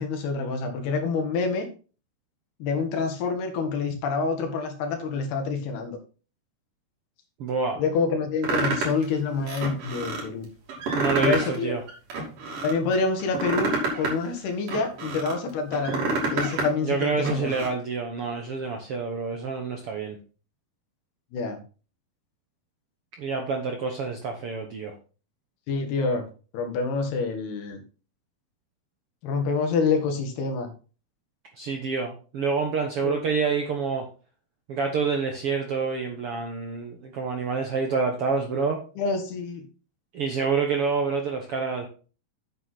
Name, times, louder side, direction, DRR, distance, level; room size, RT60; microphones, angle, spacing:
voice 1, 0.0-1.7 2.6-6.0 7.8-10.5 11.2-11.8 12.6-17.5 21.3-21.6 25.7-26.2 26.5-27.8 29.2-30.7 33.0-33.2 39.0-39.7, left 4 dB, 85° left, 5 dB, 3.9 m, -27 dB
voice 2, 7.4-7.8 10.9-11.8 16.8-20.2 23.2-24.9 31.6-34.1 34.7-38.8 40.1-41.9, right 5 dB, 80° right, 3 dB, 1.2 m, -27 dB
sound 1, 8.4-9.0 9.5-10.2 10.7-11.6 11.9-12.7 13.2-15.3 15.7-16.7 17.0-17.7, right 3 dB, 60° right, 4.3 m, -28 dB
9.0 x 7.9 x 4.1 m, 0.35 s
omnidirectional pair, 4.5 m